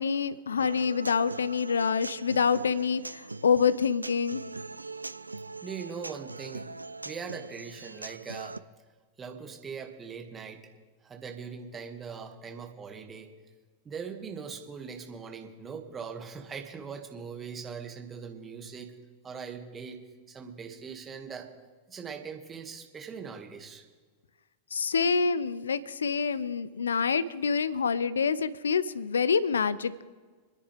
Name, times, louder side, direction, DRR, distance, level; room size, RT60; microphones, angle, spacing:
voice 1, 0.0-4.4 24.7-30.0, left 6 dB, 75° left, 17 dB, 0.5 m, -27 dB
Human voice / Acoustic guitar, 0.6-8.6, right 3 dB, 85° right, 0.4 m, -41 dB
voice 2, 5.6-6.7 7.0-8.6 9.2-10.7 11.0-13.3 13.8-19.0 19.2-21.5 21.9-23.8, right 6 dB, 20° right, 3 dB, 2.2 m, -41 dB
27.0 x 10.0 x 3.5 m, 1.5 s
figure-of-eight pair, 95°, 0 cm